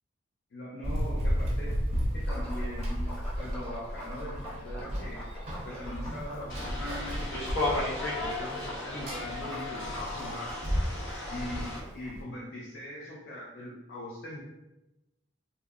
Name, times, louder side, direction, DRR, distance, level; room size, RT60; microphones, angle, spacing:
voice 1, 0.5-1.9 2.1-3.1 3.4-5.3 5.6-10.6 11.3-14.4, left 1 dB, 60° left, -4 dB, 0.4 m, -41 dB
Run, 0.8-12.2, equal, 35° right, 0.4 m, -34 dB
Liquid, 2.2-12.1, equal, 5° left, 0.6 m, -45 dB
sound 1, 6.5-11.8, left 2 dB, 85° left, 0.7 m, -35 dB
2.7 x 2.0 x 2.3 m, 0.98 s
head